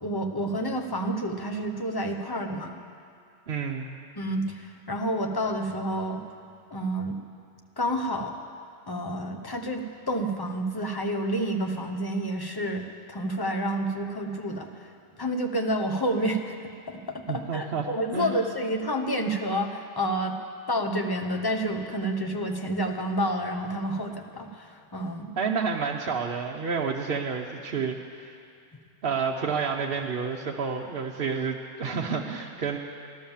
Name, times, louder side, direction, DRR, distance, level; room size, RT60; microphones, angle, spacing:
voice 1, 0.0-2.7 4.2-6.2 6.7-7.2 7.8-8.4 8.9-14.9 15.2-16.5 16.9-20.4 20.7-25.3, right 1 dB, 20° left, 4 dB, 0.9 m, -29 dB
voice 2, 3.5-3.9 17.3-17.9 18.1-18.5 25.4-28.4 29.0-32.8, right 5 dB, 55° right, 0 dB, 0.9 m, -30 dB
15.0 x 12.0 x 7.2 m, 2.4 s
omnidirectional pair, 1.3 m